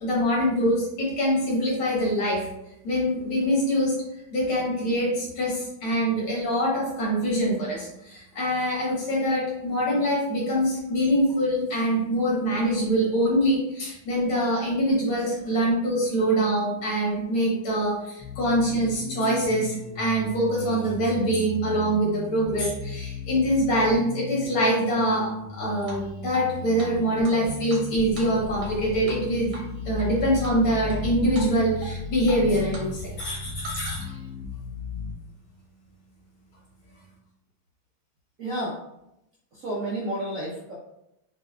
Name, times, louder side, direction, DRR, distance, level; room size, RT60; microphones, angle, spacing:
voice 1, 0.0-2.5 2.8-3.9 4.3-29.6 29.9-34.1, equal, 80° left, -5 dB, 2.5 m, -24 dB
sound 1, 18.2-35.1, left 3 dB, 55° left, 1.1 m, -36 dB
Drip, 25.8-26.5 26.8-26.9 27.2-28.8 29.0-29.2 29.5-30.1 30.4-31.0 31.3-31.5 31.8-32.9 33.1-34.2, right 1 dB, 85° right, 2.0 m, -40 dB
voice 2, 38.4-38.8 39.5-40.7, right 1 dB, 65° right, -5 dB, 0.8 m, -31 dB
6.3 x 2.4 x 2.4 m, 0.84 s
omnidirectional pair, 2.3 m